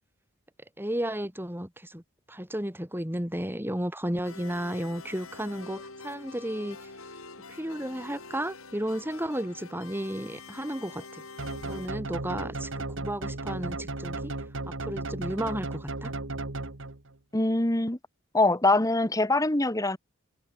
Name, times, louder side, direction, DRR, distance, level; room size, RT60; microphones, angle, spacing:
voice 1, 0.8-2.0 2.3-6.9 7.5-11.2 11.6-14.3 14.7-16.1, equal, 10° right, 4.5 m, -33 dB
sound 1, 4.2-11.9, left 3 dB, 75° left, 6.5 m, -46 dB
sound 2, 11.4-17.1, right 2 dB, 60° right, 1.9 m, -35 dB
voice 2, 17.3-18.0 18.3-20.0, left 2 dB, 15° left, 1.5 m, -23 dB
head